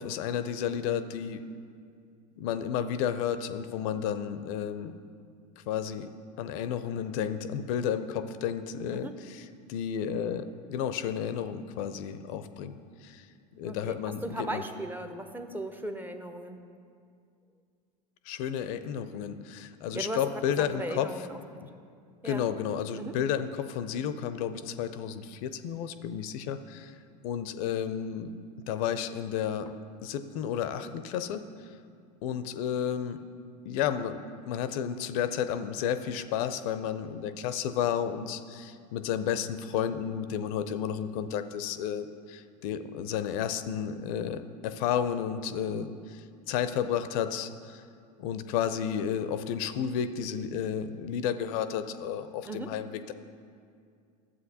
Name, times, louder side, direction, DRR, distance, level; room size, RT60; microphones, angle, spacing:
voice 1, 0.0-1.4 2.4-4.9 5.6-6.1 6.4-12.7 13.0-13.3 13.6-14.6 18.3-21.1 22.2-27.0 27.2-28.3 28.7-31.5 32.2-33.2 33.7-47.8 48.2-53.1, left 8 dB, 60° left, 11 dB, 0.4 m, -32 dB
voice 2, 13.7-16.6 19.9-20.2 20.5-21.7 22.2-22.4 22.9-23.1 52.5-52.7, right 1 dB, 10° right, 7 dB, 0.5 m, -37 dB
12.0 x 7.5 x 2.8 m, 2.3 s
hypercardioid pair, 95°, 21 cm